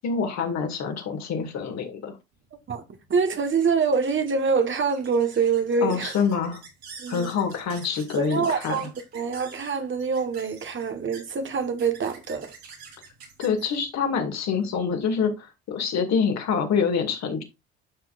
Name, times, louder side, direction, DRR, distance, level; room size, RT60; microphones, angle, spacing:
voice 1, 0.0-2.1 5.8-6.6 7.1-8.8 13.4-17.4, left 6 dB, 55° left, 2.4 m, -26 dB
sound 1, 2.4-15.3, right 5 dB, 80° right, 3.2 m, -48 dB
voice 2, 3.1-6.1 7.0-7.3 8.2-12.5, right 5 dB, 40° right, 1.5 m, -25 dB
12.0 x 5.9 x 2.6 m
hypercardioid pair, 55°, 32 cm